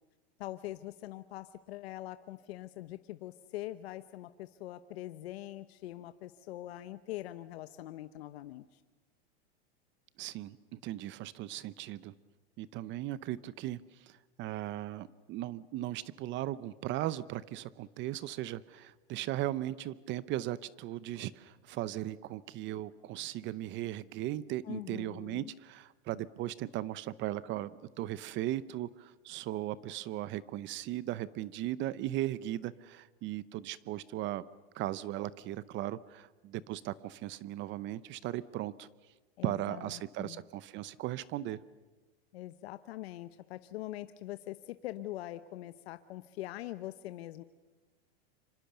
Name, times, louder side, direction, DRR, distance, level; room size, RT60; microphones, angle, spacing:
voice 1, 0.4-8.8 24.6-25.5 39.4-40.4 42.3-47.4, left 15 dB, 75° left, 12 dB, 1.0 m, -43 dB
voice 2, 10.2-12.1 12.6-27.7 28.0-34.4 34.7-38.9 39.4-41.6, right 14 dB, 35° right, 18 dB, 0.7 m, -37 dB
26.5 x 25.5 x 6.8 m, 1.2 s
supercardioid pair, 125°, 32 cm